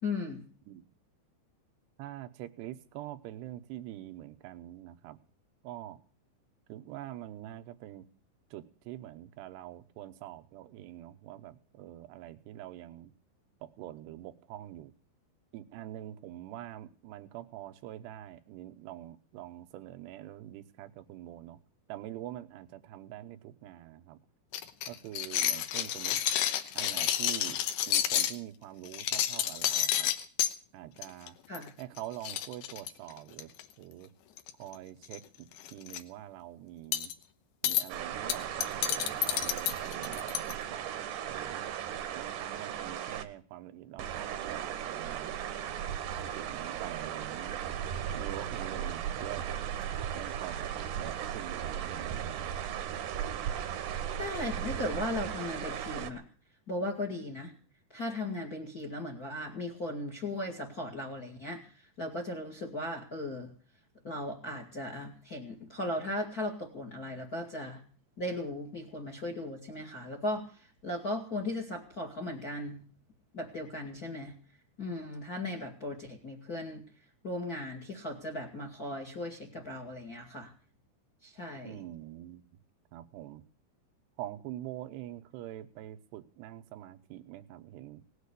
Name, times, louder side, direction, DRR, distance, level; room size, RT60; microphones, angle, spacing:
voice 1, 0.0-0.4 31.5-31.7 54.2-56.2 56.7-57.5 57.9-63.5 64.0-67.8 68.2-72.8 73.3-74.3 74.8-76.8 77.2-80.5 81.2-81.8, left 1 dB, 35° left, 4 dB, 1.5 m, -37 dB
voice 2, 2.0-5.2 5.6-6.0 6.7-8.0 8.5-13.1 13.6-14.9 15.5-21.6 21.9-24.2 24.9-26.2 26.7-27.6 27.9-30.1 30.7-31.4 31.8-33.5 33.8-34.1 34.6-37.1 37.6-38.5 38.7-41.6 42.1-45.4 46.1-47.8 48.1-49.4 50.1-52.6 81.6-82.5 82.9-83.4 84.2-88.0, right 13 dB, 85° right, 9 dB, 3.0 m, -45 dB
sound 1, 24.5-28.4 28.9-30.5 31.0-31.3 31.5-31.7 32.0-33.6 34.4-34.7 35.0-35.2 35.6-36.0 36.9-37.1 37.6-37.8 38.3-40.5, left 11 dB, 75° left, 2.7 m, -30 dB
sound 2, 37.9-43.2 44.0-56.1, right 9 dB, 65° right, 2.2 m, -36 dB
18.5 x 8.2 x 8.2 m, 0.41 s
omnidirectional pair, 4.7 m